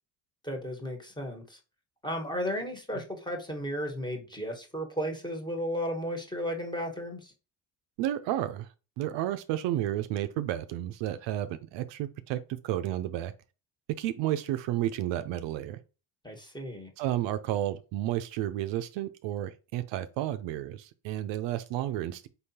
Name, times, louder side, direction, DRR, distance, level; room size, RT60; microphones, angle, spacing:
voice 1, 0.4-1.6 2.0-7.3 16.2-16.9, equal, 10° left, 1.3 m, -34 dB
voice 2, 8.0-8.7 9.0-13.3 14.0-15.8 17.0-22.3, right 13 dB, 70° right, 0.5 m, -32 dB
4.0 x 3.6 x 2.8 m
supercardioid pair, 65°, 46 cm